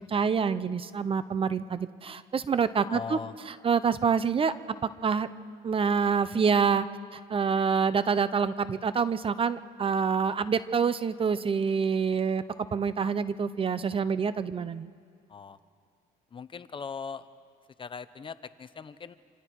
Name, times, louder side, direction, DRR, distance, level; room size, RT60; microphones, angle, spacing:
voice 1, 0.1-3.2 3.5-4.5 5.0-5.3 5.6-6.9 7.1-12.4 12.7-14.9, right 6 dB, 30° right, 14 dB, 0.7 m, -26 dB
voice 2, 2.9-3.3 15.3-15.6 16.3-17.3 17.8-19.2, left 5 dB, 30° left, 14 dB, 0.8 m, -39 dB
27.0 x 27.0 x 4.7 m, 2.1 s
cardioid pair, 110°, 17 cm